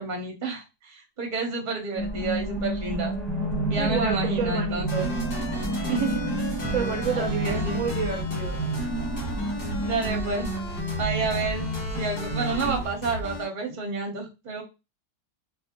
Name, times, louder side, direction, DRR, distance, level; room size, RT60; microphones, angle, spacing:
voice 1, 0.0-3.1 3.7-5.1 5.8-6.2 7.2-7.8 9.8-10.5 11.0-11.7 11.9-14.6, right 4 dB, 35° right, 2 dB, 1.0 m, -30 dB
sound 1, 1.9-12.8, right 1 dB, ahead, 1.5 m, -30 dB
voice 2, 3.8-5.0 6.7-8.6, right 6 dB, 60° right, 1 dB, 1.0 m, -30 dB
sound 2, 4.9-13.4, left 1 dB, 75° left, 2.2 m, -34 dB
3.5 x 2.8 x 2.9 m, 0.27 s
omnidirectional pair, 1.7 m